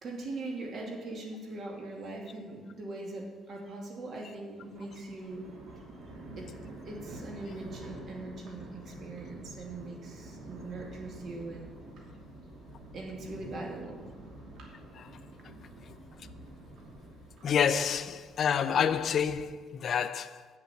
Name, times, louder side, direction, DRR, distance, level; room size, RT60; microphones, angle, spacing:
voice 1, 0.0-5.5 6.4-6.5 6.8-11.7 12.9-14.0, right 2 dB, 45° right, 2.5 m, -41 dB
Thunder, 4.6-19.3, right 1 dB, 65° right, 2.7 m, -48 dB
voice 2, 17.4-20.5, left 8 dB, 45° left, 0.5 m, -28 dB
7.9 x 7.4 x 8.4 m
cardioid pair, 140°, 0 cm